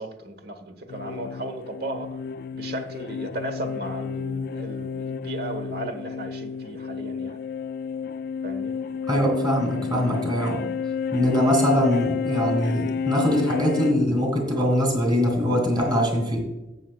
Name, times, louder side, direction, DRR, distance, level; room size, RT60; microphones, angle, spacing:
voice 1, 0.0-2.2 2.5-7.4 8.4-8.8, right 1 dB, 55° right, 7 dB, 1.2 m, -35 dB
sound 1, 0.9-13.9, left 6 dB, 55° left, 0.3 m, -30 dB
voice 2, 9.1-10.6 11.1-16.5, equal, 25° right, 2 dB, 2.6 m, -22 dB
17.5 x 6.3 x 2.3 m, 1.0 s
head